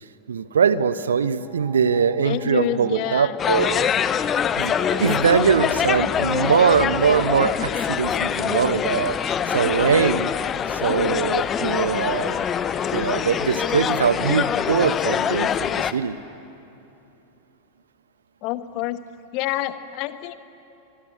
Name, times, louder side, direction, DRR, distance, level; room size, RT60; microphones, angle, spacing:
voice 1, 0.3-3.9 4.6-10.3 10.7-12.5 12.9-16.2, right 6 dB, 70° right, 15 dB, 0.9 m, -22 dB
sound 1, 1.4-15.8, right 1 dB, 5° right, 6.4 m, -44 dB
voice 2, 2.2-3.4 18.4-19.0 19.3-20.3, left 14 dB, 45° left, 13 dB, 1.2 m, -27 dB
sound 2, 3.4-15.9, left 8 dB, 25° left, 0.8 m, -24 dB
Wind instrument woodwind instrument, 11.6-15.8 18.5-18.6, right 4 dB, 40° right, 3.2 m, -47 dB
25.5 x 21.5 x 9.8 m, 2.9 s
figure-of-eight pair, 90°, 0 cm